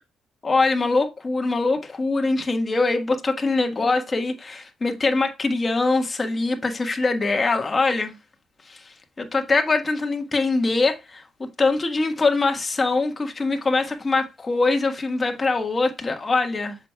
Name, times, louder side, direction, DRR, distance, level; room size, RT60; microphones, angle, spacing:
voice 1, 0.4-8.1 8.7-8.8 9.2-11.2 11.6-16.8, left 3 dB, 30° left, 1.4 m, -23 dB
7.3 x 6.0 x 2.2 m
cardioid pair, 90°, 0 cm